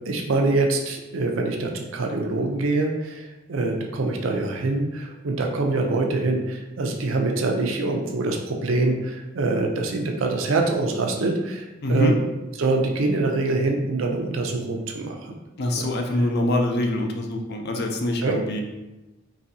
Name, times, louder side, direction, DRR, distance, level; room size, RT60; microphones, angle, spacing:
voice 1, 0.1-12.2 12.6-15.2 15.8-15.9 18.2-18.3, right 2 dB, 80° right, 2 dB, 0.5 m, -24 dB
voice 2, 11.8-12.2 15.6-18.6, left 1 dB, 55° left, 3 dB, 0.5 m, -24 dB
3.9 x 2.7 x 2.7 m, 1.0 s
head